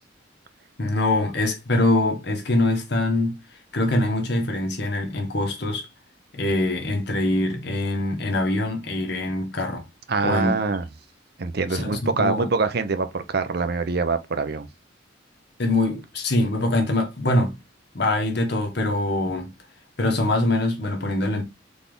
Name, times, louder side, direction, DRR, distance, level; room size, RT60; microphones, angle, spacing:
voice 1, 0.8-3.4 3.7-5.9 6.3-9.8 10.2-10.6 11.7-12.5 15.6-17.6 17.9-19.5 20.0-21.4, left 2 dB, 60° left, 1.4 m, -23 dB
voice 2, 10.1-10.8 11.4-14.7, right 4 dB, 55° right, 0.7 m, -24 dB
4.1 x 3.4 x 3.8 m
head